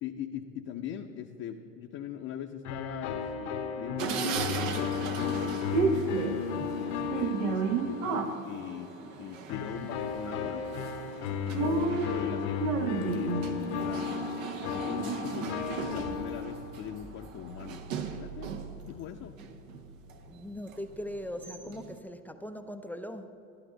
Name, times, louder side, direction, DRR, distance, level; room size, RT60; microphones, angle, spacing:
voice 1, 0.0-6.3 6.7-10.7 11.4-14.4 14.6-18.5 18.8-19.4, left 9 dB, 40° left, 2 dB, 0.7 m, -41 dB
sound 1, 2.6-8.5 9.5-16.9, left 7 dB, 65° left, 1.0 m, -35 dB
sound 2, 4.0-18.8 19.2-20.2 20.7-20.8 21.1-21.9, right 5 dB, 75° right, 1.0 m, -34 dB
Rattle / Car / Engine starting, 13.0-13.2 13.6-13.9 14.2-21.9, right 4 dB, 55° right, 2.7 m, -50 dB
voice 2, 20.3-23.3, equal, 5° left, 7 dB, 0.4 m, -40 dB
13.0 x 11.5 x 3.9 m, 3.0 s
hypercardioid pair, 95°, 39 cm